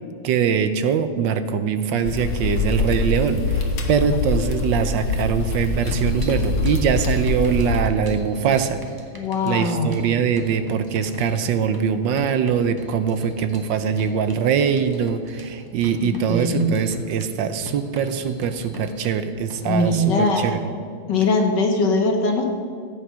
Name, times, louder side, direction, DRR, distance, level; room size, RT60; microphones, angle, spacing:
voice 1, 0.2-8.8 9.4-20.0 20.4-20.6, right 7 dB, 75° right, 10 dB, 1.3 m, -22 dB
sound 1, 2.0-7.8, left 3 dB, 80° left, 2.1 m, -24 dB
sound 2, 5.8-19.8, equal, 15° right, 1.2 m, -39 dB
voice 2, 9.1-10.0 16.0-16.8 19.6-20.6 21.1-22.4, left 2 dB, 60° left, 3 dB, 2.0 m, -21 dB
14.0 x 8.7 x 6.2 m, 2.3 s
omnidirectional pair, 2.2 m